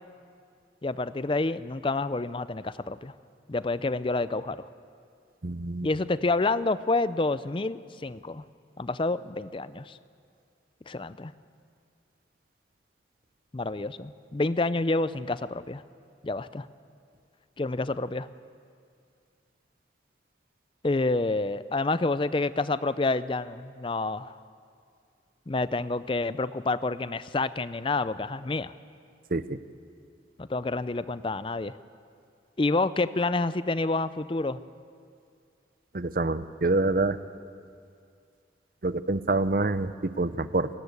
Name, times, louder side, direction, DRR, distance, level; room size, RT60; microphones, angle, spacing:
voice 1, 0.8-3.1 3.5-4.6 5.8-8.4 8.8-10.0 10.9-11.3 13.5-15.8 16.2-16.7 17.6-18.3 20.8-24.4 25.5-28.7 30.4-31.8 32.6-34.6, left 2 dB, 25° left, 15 dB, 0.5 m, -28 dB
voice 2, 5.4-5.9 29.3-29.6 35.9-37.2 38.8-40.7, right 2 dB, 50° right, 13 dB, 0.7 m, -26 dB
28.0 x 13.5 x 8.3 m, 2.3 s
head